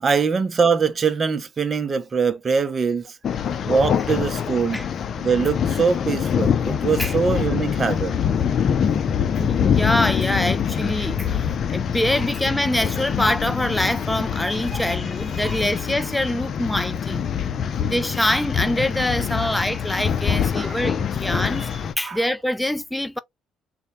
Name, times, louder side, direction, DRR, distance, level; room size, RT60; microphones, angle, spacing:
voice 1, 0.0-3.1 3.7-4.8 5.2-8.1 14.7-14.8 15.4-15.6 19.4-19.5 20.6-20.8 22.0-22.2, right 5 dB, 35° right, 0.7 m, -22 dB
sound 1, 3.2-21.9, left 7 dB, 50° left, 0.6 m, -24 dB
voice 2, 9.4-17.3 17.8-23.2, left 1 dB, 5° left, 0.4 m, -25 dB
4.0 x 2.3 x 3.3 m
supercardioid pair, 80°, 0 cm